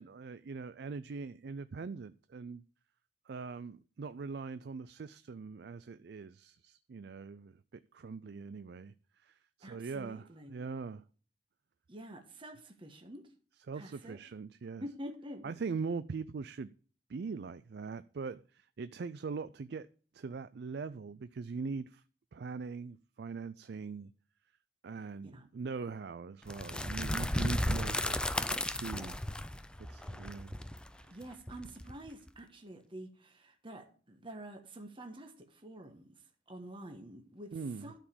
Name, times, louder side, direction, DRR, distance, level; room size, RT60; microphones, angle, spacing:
voice 1, 0.0-2.6 3.3-7.6 7.9-8.9 9.2-11.0 13.7-14.8 15.4-16.7 17.1-19.9 20.1-22.0 22.3-24.1 24.8-29.2 29.8-30.6 31.0-31.2 37.5-37.9, right 4 dB, 65° right, 0.4 m, -42 dB
voice 2, 9.6-10.6 11.9-13.2 13.7-14.2 14.8-15.5 25.2-25.4 30.0-30.1 31.1-36.1 36.5-37.5 37.8-37.9, right 1 dB, 30° right, 1.3 m, -48 dB
sound 1, 26.5-32.3, left 1 dB, 5° left, 0.5 m, -34 dB
12.0 x 5.0 x 7.1 m
head